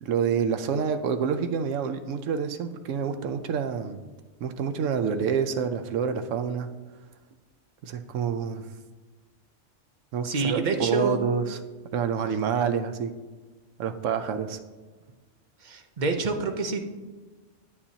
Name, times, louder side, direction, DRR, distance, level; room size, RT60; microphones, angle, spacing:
voice 1, 0.0-4.0 4.4-6.7 7.8-8.6 10.1-11.6 11.9-13.1 13.8-14.6, right 6 dB, 90° right, 8 dB, 1.0 m, -27 dB
voice 2, 10.2-11.2 15.6-16.8, right 4 dB, 45° right, 6 dB, 0.7 m, -27 dB
9.6 x 8.6 x 2.8 m, 1.3 s
omnidirectional pair, 1.3 m